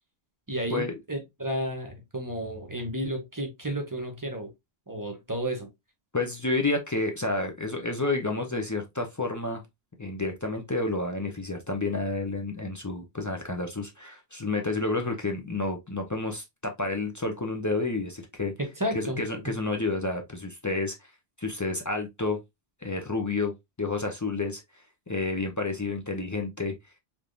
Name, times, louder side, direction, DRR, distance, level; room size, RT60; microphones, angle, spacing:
voice 1, 0.5-4.5 4.9-5.7 18.6-19.5, right 1 dB, 20° right, 0.7 m, -32 dB
voice 2, 6.1-9.6 10.0-18.5 18.9-21.0 21.4-22.4 22.8-24.6 25.1-26.7, left 3 dB, 25° left, 0.4 m, -30 dB
3.4 x 2.9 x 2.4 m
omnidirectional pair, 1.0 m